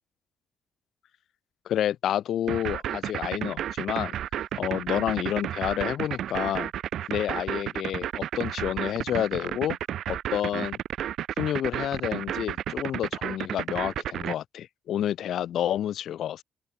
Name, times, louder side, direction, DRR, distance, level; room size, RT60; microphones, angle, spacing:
voice 1, 1.7-4.2 4.6-6.7 7.1-9.8 10.1-10.8 11.4-16.4, left 11 dB, 70° left, 2.8 m, -29 dB
sound 1, 2.5-14.3, right 11 dB, 70° right, 2.7 m, -31 dB
open air
cardioid pair, 90°, 0 cm